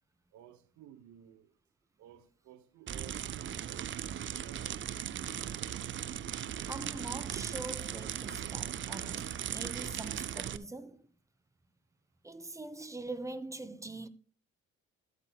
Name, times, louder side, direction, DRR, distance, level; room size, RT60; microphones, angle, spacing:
voice 1, 0.3-1.5 2.0-3.9 4.4-5.1, right 11 dB, 75° right, 0.9 m, -55 dB
sound 1, 2.9-10.6, right 10 dB, 40° right, 0.5 m, -38 dB
voice 2, 6.7-11.1 12.2-14.1, right 2 dB, 10° right, 0.8 m, -43 dB
13.0 x 8.3 x 2.3 m
cardioid pair, 85°, 29 cm